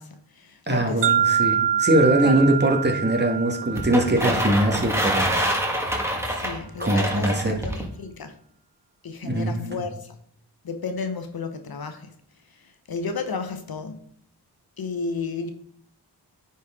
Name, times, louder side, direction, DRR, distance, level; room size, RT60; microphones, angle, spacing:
voice 1, 0.0-1.3 2.2-2.4 6.2-8.4 9.0-10.1 10.6-12.1 12.5-14.0 14.8-15.5, left 4 dB, 60° left, 7 dB, 1.0 m, -33 dB
voice 2, 0.7-5.4 6.8-7.6 9.2-9.8, right 1 dB, 25° right, 3 dB, 1.5 m, -22 dB
sound 1, 1.0-5.0, right 8 dB, 75° right, 0.6 m, -25 dB
sound 2, 3.8-7.9, equal, 5° right, 1.8 m, -26 dB
9.5 x 4.3 x 3.7 m, 0.67 s
cardioid pair, 60°, 42 cm